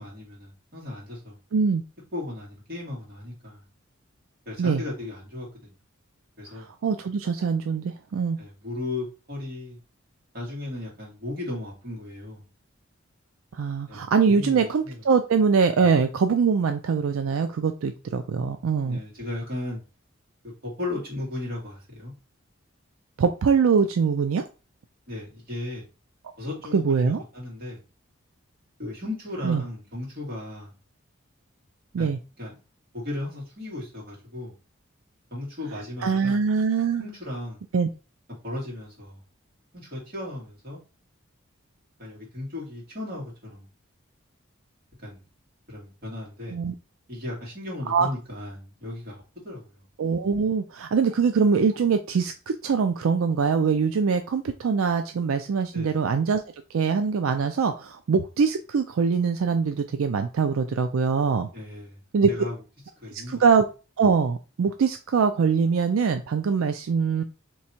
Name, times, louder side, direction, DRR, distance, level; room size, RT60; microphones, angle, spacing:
voice 1, 0.0-1.4 2.1-3.6 4.5-5.7 6.4-6.7 8.4-9.8 10.3-12.4 13.9-15.0 15.8-15.9 18.8-19.8 20.6-22.1 25.1-25.8 26.4-27.8 28.8-30.7 32.0-32.6 32.9-34.5 35.3-36.4 37.0-37.6 38.4-39.2 39.7-40.8 42.0-43.7 45.0-45.2 45.7-46.6 47.1-49.9 55.7-55.9 61.5-62.0 62.3-62.6 63.0-63.4, left 2 dB, 45° right, -4 dB, 2.3 m, -36 dB
voice 2, 1.5-1.8 4.6-4.8 6.5-8.4 13.6-19.0 23.2-24.4 26.7-27.2 29.4-29.6 31.9-32.2 36.0-37.0 37.7-37.9 46.5-46.7 47.9-48.1 50.0-56.4 56.7-61.5 62.1-62.3 63.1-63.6 64.0-67.2, right 5 dB, 85° right, 7 dB, 0.4 m, -23 dB
3.3 x 3.1 x 4.2 m, 0.32 s
head